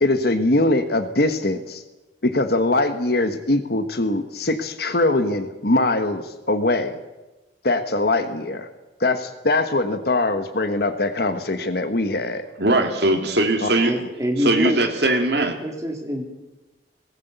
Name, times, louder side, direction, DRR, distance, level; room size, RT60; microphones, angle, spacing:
voice 1, 0.0-1.8 2.2-7.0 7.6-8.7 9.0-12.5 13.6-13.9, left 2 dB, 55° left, 8 dB, 1.3 m, -22 dB
voice 2, 12.6-13.9 14.4-15.6, right 2 dB, 60° right, 3 dB, 2.7 m, -20 dB
voice 3, 13.8-14.8 15.1-16.2, equal, 20° right, 2 dB, 3.1 m, -26 dB
19.0 x 18.0 x 8.1 m, 1.1 s
head